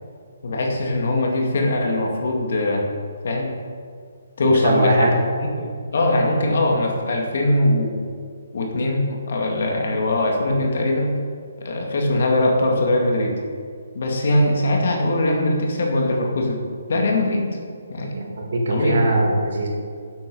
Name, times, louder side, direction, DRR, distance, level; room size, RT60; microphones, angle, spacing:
voice 1, 0.4-2.9 3.2-3.6 4.4-5.1 5.6-8.0 8.5-11.2 11.6-13.4 13.9-16.6 16.9-17.6 17.9-18.1 18.7-19.0, left 1 dB, 50° left, 1 dB, 2.0 m, -21 dB
voice 2, 4.4-5.2 18.1-19.7, right 1 dB, 50° right, 0 dB, 2.2 m, -21 dB
11.0 x 8.0 x 5.4 m, 2.2 s
hypercardioid pair, 175°, 0 cm